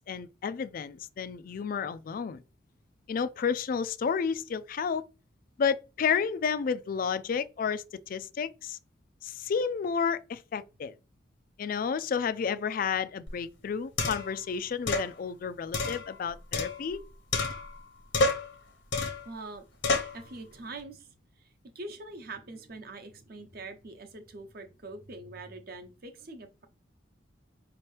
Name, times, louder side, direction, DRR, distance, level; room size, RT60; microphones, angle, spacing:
voice 1, 0.1-2.4 3.1-5.0 5.6-8.8 9.2-10.9 11.6-17.0, left 6 dB, 50° left, 0.3 m, -31 dB
sound 1, 13.3-13.4 14.0-14.4 14.9-15.1 15.7-17.0 17.3-17.8 18.1-18.5 18.9-19.3 19.8-20.2, left 3 dB, 75° left, 1.0 m, -29 dB
voice 2, 19.2-19.6 20.0-21.5 21.7-26.7, right 2 dB, 50° right, 0.8 m, -44 dB
5.3 x 2.9 x 3.2 m
head